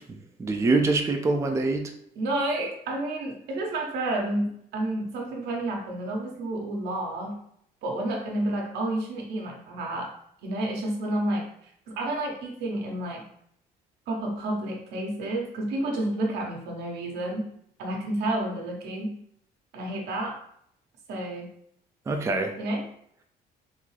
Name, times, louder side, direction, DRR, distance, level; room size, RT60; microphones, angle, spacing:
voice 1, 0.1-1.9 22.1-22.5, right 3 dB, 15° right, 4 dB, 0.4 m, -25 dB
voice 2, 2.2-7.4 7.8-10.1 10.4-13.2 14.1-17.5 17.8-19.2 19.7-20.4 21.1-21.5 22.6-22.9, right 1 dB, 80° right, 0 dB, 1.0 m, -30 dB
3.7 x 2.7 x 3.2 m, 0.70 s
cardioid pair, 110°, 17 cm